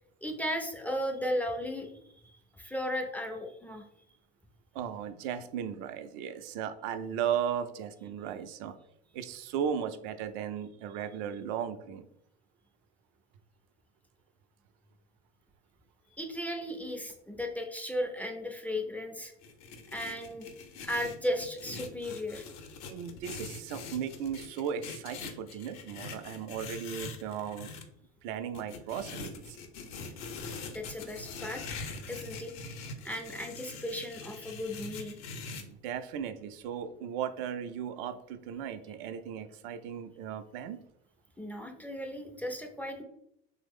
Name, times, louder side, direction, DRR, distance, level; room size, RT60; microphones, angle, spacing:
voice 1, 0.2-1.9 2.2-3.9 16.1-19.3 19.9-20.5 20.8-22.5 30.7-31.6 32.1-32.5 33.0-35.2 41.4-43.0, equal, 5° left, 3 dB, 0.4 m, -35 dB
voice 2, 4.7-8.8 9.1-12.1 22.9-27.7 28.2-29.6 35.7-40.8, right 8 dB, 65° right, 10 dB, 0.4 m, -36 dB
sound 1, 19.4-27.8 28.5-35.6, left 4 dB, 65° left, 0.7 m, -43 dB
3.0 x 2.0 x 3.5 m, 0.76 s
hypercardioid pair, 80°, 32 cm